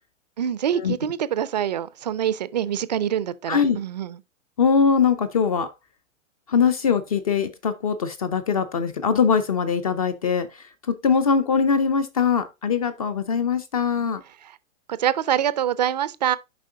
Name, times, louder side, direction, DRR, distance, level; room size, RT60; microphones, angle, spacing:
voice 1, 0.4-4.2 14.9-16.4, right 10 dB, 35° right, 0.4 m, -25 dB
voice 2, 3.5-3.8 4.6-5.7 6.5-14.2, left 6 dB, 30° left, 0.4 m, -22 dB
7.6 x 5.2 x 3.7 m
hypercardioid pair, 155°, 39 cm